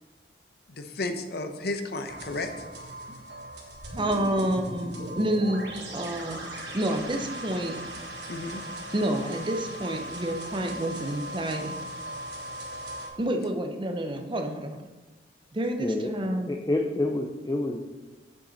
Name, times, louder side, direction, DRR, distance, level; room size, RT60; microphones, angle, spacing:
voice 1, 0.7-2.5 8.3-8.6, left 2 dB, 60° left, 7 dB, 0.7 m, -33 dB
sound 1, 2.1-13.1, right 1 dB, 75° right, 1.6 m, -38 dB
voice 2, 4.0-5.6 5.9-7.8 8.9-11.8 13.2-14.9 15.5-16.5, right 1 dB, 25° right, 5 dB, 0.7 m, -29 dB
voice 3, 15.8-16.1 16.5-17.8, left 2 dB, 20° left, 2 dB, 0.5 m, -28 dB
7.6 x 7.2 x 4.0 m, 1.2 s
head